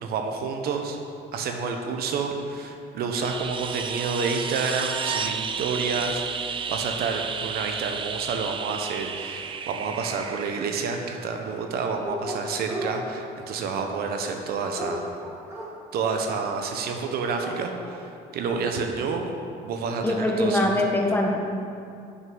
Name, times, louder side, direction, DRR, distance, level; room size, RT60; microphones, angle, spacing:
voice 1, 0.0-1.0 1.3-15.1 15.9-19.4 19.6-20.7, right 5 dB, 65° right, 4 dB, 0.8 m, -29 dB
sound 1, 3.2-11.9 14.3-14.4, right 6 dB, 30° right, 0.4 m, -32 dB
Dog, 12.0-13.0 14.0-16.2 16.8-17.0 17.2-18.0, equal, 15° right, 1.7 m, -35 dB
voice 2, 20.0-21.4, left 1 dB, 10° left, 0 dB, 0.9 m, -23 dB
6.3 x 5.4 x 5.4 m, 2.5 s
cardioid pair, 110°, 17 cm